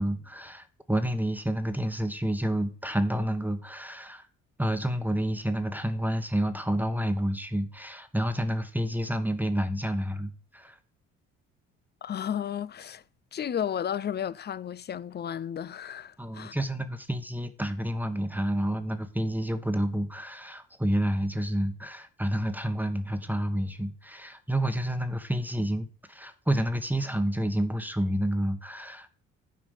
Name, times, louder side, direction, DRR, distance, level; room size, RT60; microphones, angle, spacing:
voice 1, 0.0-4.3 4.6-10.8 16.2-29.1, right 1 dB, 5° right, 1.2 m, -29 dB
voice 2, 12.0-13.0 13.3-16.6, left 9 dB, 35° left, 0.5 m, -33 dB
9.1 x 4.9 x 6.5 m
supercardioid pair, 75°, 31 cm